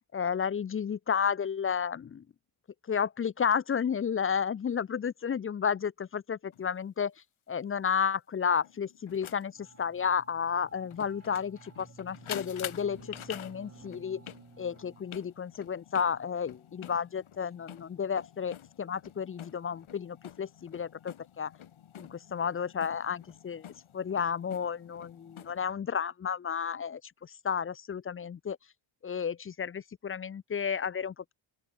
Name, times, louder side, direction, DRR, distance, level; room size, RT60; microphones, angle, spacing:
voice 1, 0.1-2.2 2.9-7.1 7.5-14.2 14.6-21.5 22.0-23.7 23.9-28.6 29.0-31.3, left 7 dB, 30° left, 0.3 m, -32 dB
sound 1, 6.5-6.7 8.6-25.7, left 10 dB, 70° left, 1.8 m, -48 dB
sound 2, 9.6-15.0, right 4 dB, 30° right, 2.0 m, -54 dB
open air
cardioid pair, 95°, 50 cm